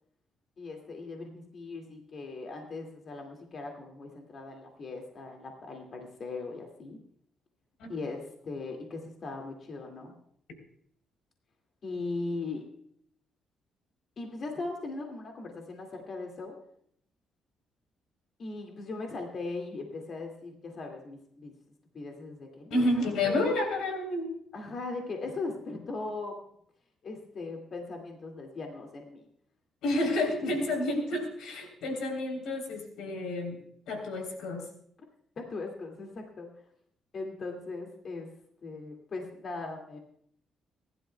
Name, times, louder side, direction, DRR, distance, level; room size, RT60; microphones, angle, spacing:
voice 1, 0.6-7.0 7.9-10.2 11.8-12.6 14.2-16.5 18.4-21.5 21.9-22.9 23.2-23.4 24.5-26.4 27.0-29.2 30.4-30.7 35.4-36.5 37.1-38.3 38.6-40.0, left 3 dB, 50° left, 2 dB, 2.2 m, -39 dB
voice 2, 22.7-24.3 29.8-33.6 33.9-34.6, left 1 dB, 85° left, 3 dB, 3.4 m, -30 dB
28.0 x 11.5 x 2.3 m, 0.68 s
cardioid pair, 90°, 0 cm